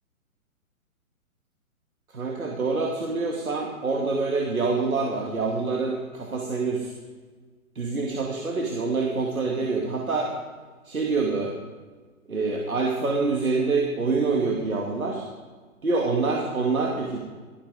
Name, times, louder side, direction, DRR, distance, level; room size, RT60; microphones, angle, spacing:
voice 1, 2.1-6.9 7.7-10.3 10.8-11.5 12.3-15.3 15.8-17.2, right 3 dB, 70° right, -1 dB, 2.5 m, -26 dB
16.5 x 13.0 x 5.0 m, 1.4 s
figure-of-eight pair, 125°, 43 cm